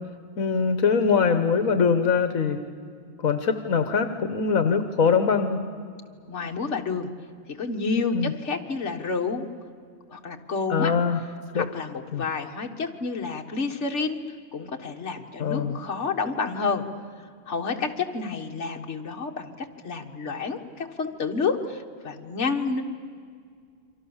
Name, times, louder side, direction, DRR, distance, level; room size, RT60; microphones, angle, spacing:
voice 1, 0.4-2.6 3.2-5.6 8.1-8.3 10.7-11.2 11.5-11.6 12.1-12.2 15.4-15.8, left 5 dB, 80° left, 9 dB, 1.5 m, -22 dB
voice 2, 6.3-7.1 7.5-9.5 10.1-10.9 11.5-14.2 14.5-16.8 17.5-19.5 19.8-22.8, left 4 dB, 55° left, 3 dB, 1.9 m, -29 dB
29.0 x 24.5 x 7.3 m, 2.1 s
omnidirectional pair, 1.4 m